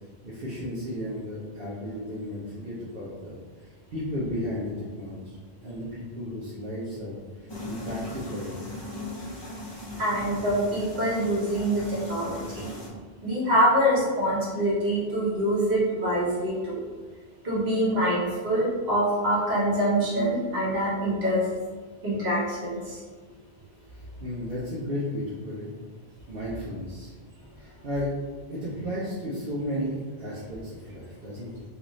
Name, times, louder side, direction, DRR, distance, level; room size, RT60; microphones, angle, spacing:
voice 1, 0.2-8.7 23.9-25.7 26.3-27.1 27.6-28.1 28.5-31.6, equal, 65° right, -9 dB, 0.9 m, -34 dB
sound 1, 7.5-12.9, left 1 dB, 30° left, 0.6 m, -38 dB
voice 2, 10.0-12.7 13.2-16.8 17.4-21.5 22.0-23.0, equal, 45° right, -7 dB, 1.1 m, -25 dB
3.1 x 2.6 x 3.0 m, 1.4 s
omnidirectional pair, 1.1 m